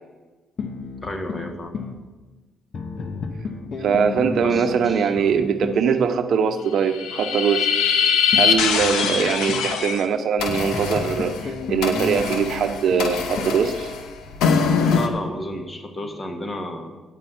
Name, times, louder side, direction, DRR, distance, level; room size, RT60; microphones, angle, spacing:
sound 1, 0.6-2.0 2.7-5.9 8.3-9.7 10.5-13.7, left 4 dB, 55° left, 0.9 m, -32 dB
voice 1, 1.0-1.7 4.4-5.3 8.9-9.1 14.8-17.0, left 1 dB, 30° left, 5 dB, 1.5 m, -32 dB
voice 2, 3.8-7.7 8.3-13.9, right 6 dB, 65° right, 8 dB, 0.8 m, -22 dB
sound 2, 6.8-10.0 10.4-15.1, left 6 dB, 85° left, 0.9 m, -23 dB
9.5 x 5.5 x 7.7 m, 1.2 s
cardioid pair, 90°, 0 cm